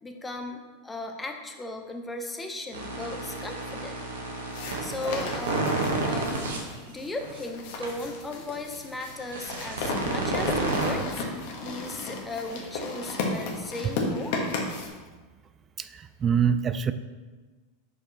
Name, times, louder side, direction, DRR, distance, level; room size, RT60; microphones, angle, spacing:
voice 1, 0.0-4.0 4.6-6.6 6.9-11.2 11.6-14.4, left 2 dB, 15° left, 4 dB, 0.8 m, -36 dB
sound 1, 2.7-6.6 7.2-7.4 7.8-7.9 9.1-10.9, right 3 dB, 85° right, 1.2 m, -30 dB
sound 2, 4.5-14.9, left 3 dB, 65° left, 1.2 m, -34 dB
voice 2, 15.8-16.9, right 7 dB, 30° right, 12 dB, 0.3 m, -25 dB
5.1 x 4.9 x 4.1 m, 1.3 s
hypercardioid pair, 105°, 0 cm